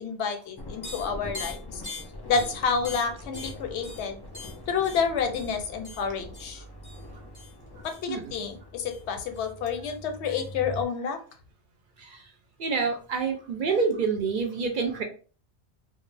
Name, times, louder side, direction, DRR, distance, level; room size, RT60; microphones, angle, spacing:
voice 1, 0.0-1.8 2.3-4.2 4.7-6.6 8.0-11.2, left 6 dB, 90° left, 6 dB, 0.9 m, -29 dB
sound 1, 0.6-10.8, left 2 dB, 40° left, 0.3 m, -41 dB
voice 2, 12.6-15.0, right 5 dB, 60° right, 3 dB, 0.6 m, -27 dB
2.4 x 2.1 x 3.2 m, 0.39 s
omnidirectional pair, 1.1 m